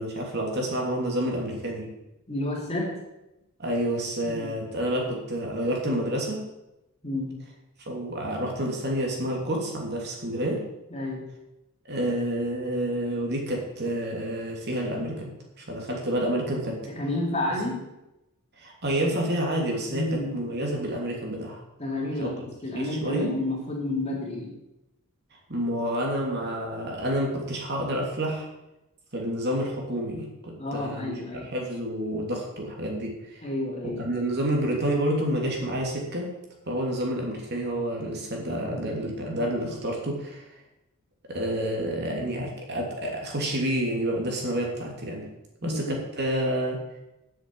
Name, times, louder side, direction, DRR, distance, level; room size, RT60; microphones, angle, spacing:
voice 1, 0.0-1.9 3.6-6.4 7.9-10.6 11.9-16.8 18.6-21.6 22.2-22.3 22.7-23.3 25.5-28.5 29.1-31.1 31.5-33.5 34.0-36.3 36.7-40.4 41.3-45.2 45.6-46.8, right 1 dB, 50° right, -1 dB, 3.2 m, -29 dB
voice 2, 2.3-3.0 4.2-4.5 7.0-7.4 10.9-11.3 16.9-17.9 19.9-20.4 21.8-24.6 30.6-31.5 33.4-34.1 45.6-46.0, left 1 dB, 30° left, -2 dB, 3.2 m, -30 dB
10.0 x 7.6 x 8.8 m, 0.93 s
head